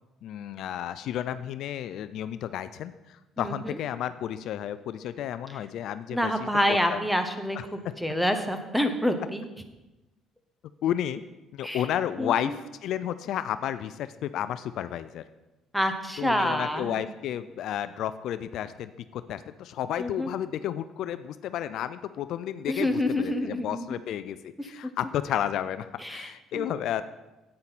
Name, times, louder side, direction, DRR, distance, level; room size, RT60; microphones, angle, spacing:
voice 1, 0.2-6.3 6.7-7.0 7.6-7.9 10.8-11.2 11.5-15.2 16.2-27.0, left 10 dB, 70° left, 13 dB, 0.4 m, -32 dB
voice 2, 3.4-3.8 6.1-9.5 11.6-11.8 12.2-12.5 15.7-17.0 20.0-20.3 22.7-23.8 24.6-24.7 26.0-26.7, equal, ahead, 7 dB, 1.0 m, -28 dB
9.7 x 8.7 x 4.1 m, 1.0 s
cardioid pair, 100°, 0 cm